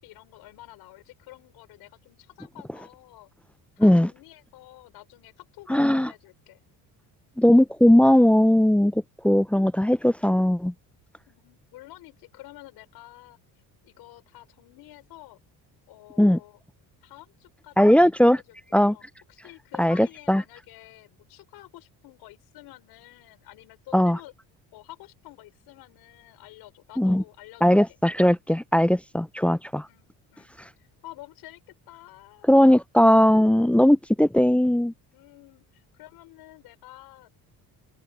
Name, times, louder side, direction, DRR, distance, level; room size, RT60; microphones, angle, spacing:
voice 1, 0.0-3.3 3.8-6.6 11.3-13.4 13.8-15.4 15.9-16.6 17.0-18.6 18.9-19.0 19.3-24.3 24.7-28.0 29.9-31.6 31.9-32.5 35.1-37.3, left 17 dB, 80° left, 5.7 m, -49 dB
voice 2, 5.7-6.1 7.4-10.7 16.2-16.4 17.8-18.4 18.7-19.0 19.8-20.4 23.9-24.2 27.0-27.2 27.6-29.9 32.5-34.9, equal, 5° left, 0.3 m, -19 dB
open air
cardioid pair, 115°, 38 cm